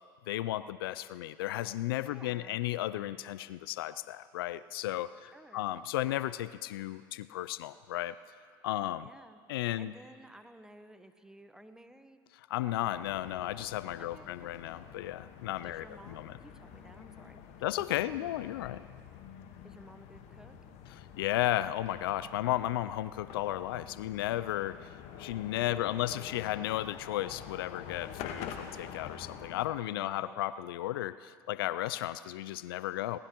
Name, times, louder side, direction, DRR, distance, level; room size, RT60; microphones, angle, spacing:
voice 1, 0.3-8.1 8.6-9.1 9.5-9.9 12.5-16.4 17.6-18.8 21.2-33.2, left 14 dB, 75° left, 16 dB, 0.4 m, -34 dB
voice 2, 2.1-2.6 5.3-5.7 9.0-9.4 9.8-12.2 14.0-14.5 15.6-17.4 18.0-18.4 19.6-20.6 25.6-26.3 29.9-30.4, right 1 dB, 5° right, 9 dB, 1.0 m, -54 dB
sound 1, 12.8-29.7, left 8 dB, 60° left, 1.3 m, -47 dB
22.0 x 19.0 x 3.0 m, 2.1 s
hypercardioid pair, 75°, 12 cm